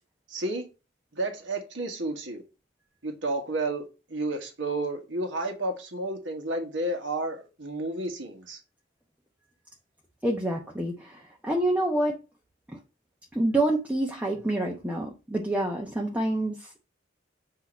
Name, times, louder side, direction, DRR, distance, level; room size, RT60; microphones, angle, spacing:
voice 1, 0.3-0.7 1.1-2.4 3.0-8.6, right 2 dB, 85° right, 1.5 m, -31 dB
voice 2, 10.2-12.1 13.3-16.6, right 1 dB, 10° right, 0.9 m, -27 dB
8.1 x 2.9 x 6.1 m
head